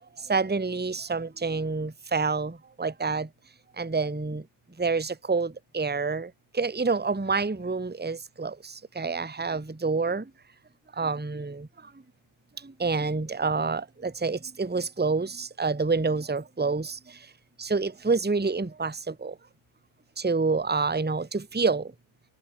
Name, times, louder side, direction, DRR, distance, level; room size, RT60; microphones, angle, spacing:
voice 1, 0.2-3.3 3.8-4.5 4.8-10.3 10.9-11.9 12.6-17.3 17.6-19.4 20.2-21.9, right 4 dB, 10° right, 0.7 m, -28 dB
omnidirectional pair, 1.7 m